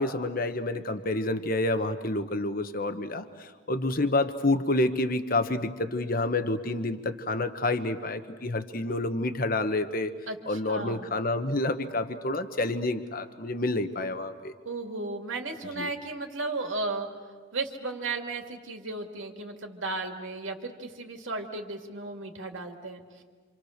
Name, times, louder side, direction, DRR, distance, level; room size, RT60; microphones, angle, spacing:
voice 1, 0.0-10.1 10.5-14.5 15.7-15.9, left 2 dB, 45° left, 9 dB, 1.2 m, -28 dB
voice 2, 10.3-11.1 14.6-17.1 17.5-23.2, right 3 dB, 75° right, 3 dB, 2.5 m, -35 dB
27.5 x 27.0 x 6.6 m, 1.5 s
head